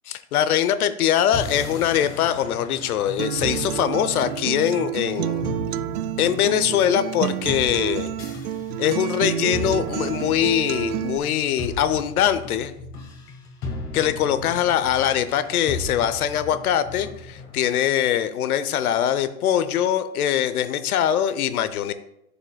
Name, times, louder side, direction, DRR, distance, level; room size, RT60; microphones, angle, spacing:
voice 1, 0.1-5.5 6.2-8.1 8.8-12.7 13.9-21.9, left 10 dB, 70° left, 12 dB, 0.8 m, -22 dB
sound 1, 1.3-17.7, left 2 dB, 30° left, 1.6 m, -36 dB
Acoustic guitar, 3.2-11.2, right 12 dB, 75° right, 0.5 m, -29 dB
11.5 x 6.7 x 2.2 m, 0.81 s
hypercardioid pair, 145°, 45 cm